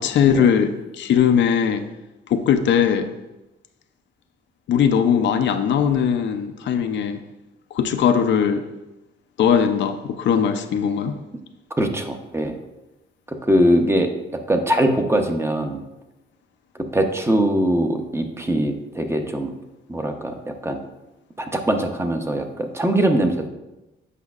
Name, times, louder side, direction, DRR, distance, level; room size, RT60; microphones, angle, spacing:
voice 1, 0.0-1.9 2.3-3.1 4.7-7.2 7.7-8.6 9.4-11.2, left 7 dB, 65° left, 0.5 m, -19 dB
voice 2, 11.8-12.6 13.4-14.1 14.5-15.8 16.9-19.5 19.9-20.8 21.4-23.5, right 1 dB, 15° right, 0.6 m, -21 dB
8.2 x 5.0 x 2.4 m
cardioid pair, 90°, 20 cm